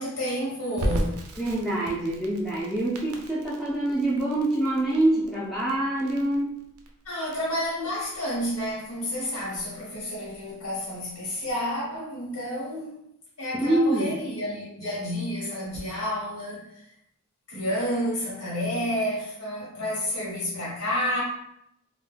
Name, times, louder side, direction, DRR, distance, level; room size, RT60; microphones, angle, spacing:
voice 1, 0.0-1.2 7.0-12.9 13.4-16.8 17.5-21.2, equal, 85° left, -5 dB, 0.9 m, -30 dB
Crackle, 0.8-11.5, right 1 dB, 75° right, 0.4 m, -37 dB
voice 2, 1.4-6.6 13.5-14.1, right 1 dB, ahead, -8 dB, 0.3 m, -25 dB
2.1 x 2.1 x 3.2 m, 0.79 s
head